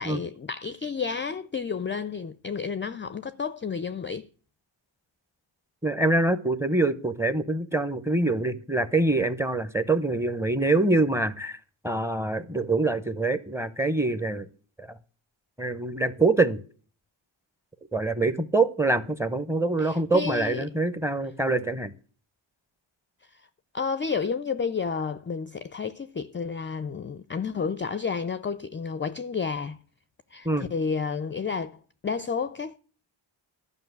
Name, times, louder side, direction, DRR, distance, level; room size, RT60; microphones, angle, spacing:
voice 1, 0.0-4.3 19.8-20.7 23.3-23.4 23.7-29.8 30.3-31.7 32.0-32.8, left 5 dB, 25° left, 0.4 m, -31 dB
voice 2, 5.8-11.6 11.8-14.5 14.8-14.9 15.6-16.6 17.9-21.9 30.4-30.7, right 2 dB, 5° right, 0.8 m, -25 dB
12.0 x 5.5 x 8.1 m
cardioid pair, 95°, 49 cm